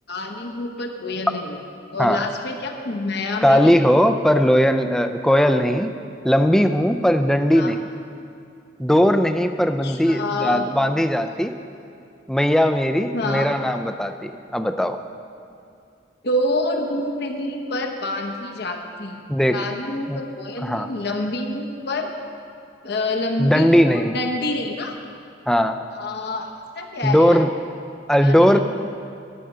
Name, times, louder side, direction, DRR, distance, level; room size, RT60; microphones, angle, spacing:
voice 1, 0.1-1.6 1.9-3.8 7.5-7.7 9.8-10.6 13.1-13.5 16.2-19.2 19.5-22.1 22.8-25.0 25.9-27.5 28.2-28.6, left 2 dB, 55° left, 3 dB, 1.0 m, -27 dB
voice 2, 3.4-5.9 6.2-7.8 8.8-11.6 12.3-15.0 19.3-19.6 20.1-20.2 20.6-20.9 23.4-24.2 25.5-25.8 27.0-27.5 28.1-28.6, equal, 5° left, 8 dB, 0.4 m, -18 dB
12.0 x 7.5 x 6.7 m, 2.5 s
head